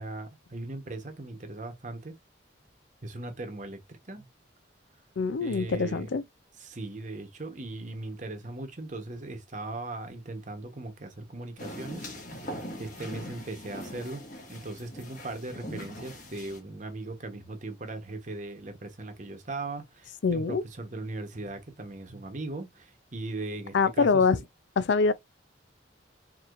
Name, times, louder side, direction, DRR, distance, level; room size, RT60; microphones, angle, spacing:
voice 1, 0.0-2.2 3.0-4.3 5.4-6.2 6.6-14.2 14.5-24.4, right 2 dB, 40° right, 1.1 m, -39 dB
voice 2, 5.2-6.2 20.2-20.6 23.7-24.4 24.8-25.1, left 4 dB, 70° left, 0.4 m, -24 dB
sound 1, 11.6-16.6, equal, 40° left, 1.7 m, -41 dB
4.7 x 2.9 x 2.5 m
head